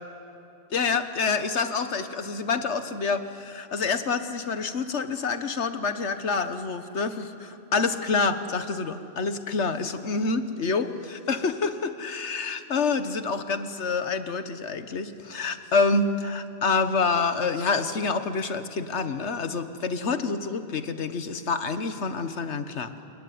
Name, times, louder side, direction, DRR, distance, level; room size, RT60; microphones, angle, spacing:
voice 1, 0.7-22.9, left 4 dB, 80° left, 10 dB, 1.6 m, -27 dB
27.0 x 22.5 x 9.5 m, 2.7 s
omnidirectional pair, 1.2 m